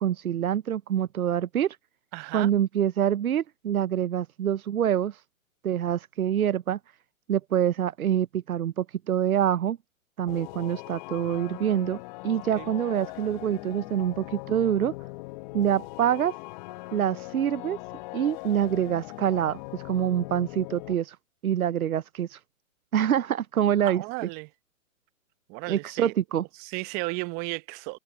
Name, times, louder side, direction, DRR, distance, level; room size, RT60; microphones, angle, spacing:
voice 1, 0.0-1.8 2.3-5.2 5.6-6.8 7.3-9.8 10.2-14.9 15.5-16.4 16.9-17.8 18.1-21.2 21.4-22.4 22.9-24.0 25.7-26.4, right 10 dB, 80° right, 0.7 m, -26 dB
voice 2, 2.1-2.5 12.3-12.7 23.8-24.5 25.5-26.1 26.6-28.0, right 26 dB, 20° right, 0.8 m, -34 dB
sound 1, 10.3-20.9, left 23 dB, 30° left, 1.4 m, -40 dB
hypercardioid pair, 130°, 42 cm